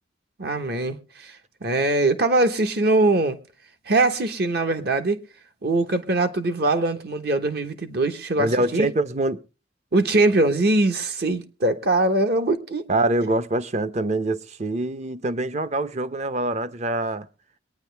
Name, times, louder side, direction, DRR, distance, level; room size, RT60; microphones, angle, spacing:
voice 1, 0.4-1.3 1.6-3.4 3.9-5.2 5.6-8.9 9.9-12.9, right 2 dB, 60° right, 1.2 m, -22 dB
voice 2, 8.4-9.4 12.9-17.3, right 2 dB, 40° right, 0.7 m, -25 dB
22.5 x 9.4 x 3.4 m
head